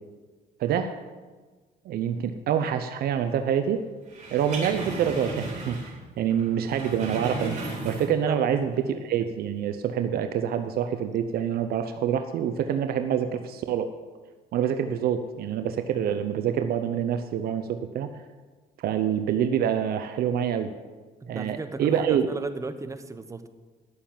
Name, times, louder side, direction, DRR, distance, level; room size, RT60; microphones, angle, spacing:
voice 1, 0.6-1.0 1.8-3.8 4.3-7.6 7.8-13.9 14.5-18.1 18.8-20.7 21.3-22.2, right 8 dB, 65° right, 8 dB, 0.7 m, -26 dB
sound 1, 4.1-6.0 6.3-8.3 8.7-8.8, right 2 dB, 45° right, 3.5 m, -35 dB
voice 2, 21.2-23.5, right 3 dB, 20° right, 9 dB, 0.9 m, -35 dB
11.0 x 7.0 x 7.3 m, 1.3 s
cardioid pair, 110°, 17 cm